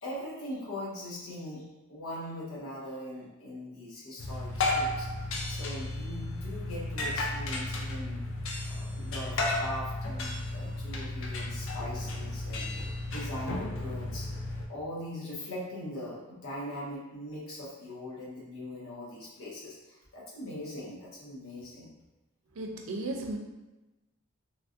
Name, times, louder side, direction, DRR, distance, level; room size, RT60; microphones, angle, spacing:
voice 1, 0.0-5.1 5.5-8.3 8.7-12.7 13.1-14.3 14.7-21.9, left 1 dB, 80° left, -6 dB, 1.0 m, -41 dB
sound 1, 4.2-14.7, left 2 dB, 65° left, 0.5 m, -33 dB
voice 2, 22.6-23.4, right 2 dB, 75° right, 2 dB, 0.5 m, -35 dB
3.2 x 2.5 x 2.4 m, 1.0 s
head